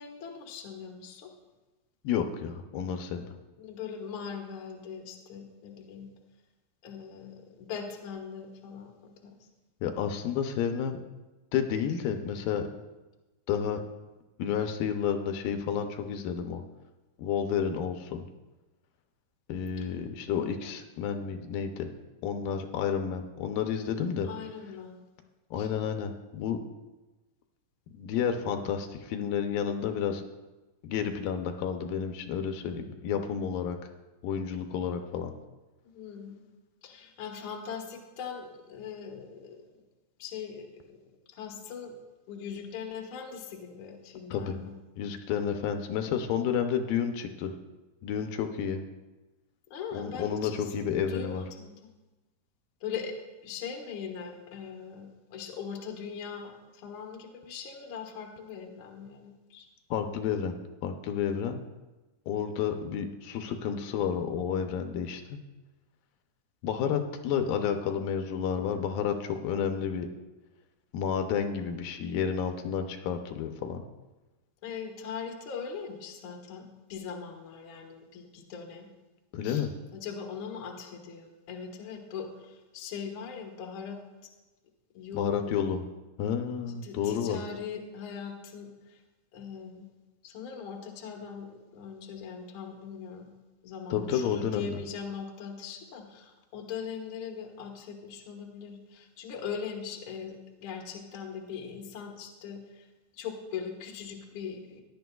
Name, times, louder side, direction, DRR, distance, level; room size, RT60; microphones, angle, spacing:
voice 1, 0.0-1.3 3.6-6.1 6.8-9.3 24.2-25.0 25.6-25.7 35.8-36.5 36.8-39.6 40.2-41.0 41.3-42.0 42.3-44.8 45.3-45.5 49.7-51.7 52.8-59.7 74.6-78.9 79.4-84.0 84.9-85.7 86.8-89.0 89.3-89.9 90.2-93.3 93.6-102.9 103.1-104.8, left 6 dB, 60° left, 1 dB, 1.3 m, -40 dB
voice 2, 2.0-3.3 9.8-11.0 11.5-12.6 13.5-13.8 14.4-16.6 17.2-18.3 19.5-21.9 22.2-24.3 25.5-26.6 27.9-30.2 30.8-33.8 34.2-35.3 44.3-44.6 45.0-47.5 48.0-48.8 49.9-51.4 59.9-60.5 60.8-61.6 62.3-65.4 66.6-70.1 70.9-73.8 79.3-79.7 85.1-85.8 86.2-87.4 93.9-94.8, left 7 dB, 80° left, 6 dB, 2.3 m, -30 dB
17.0 x 11.0 x 2.3 m, 1.1 s
omnidirectional pair, 4.1 m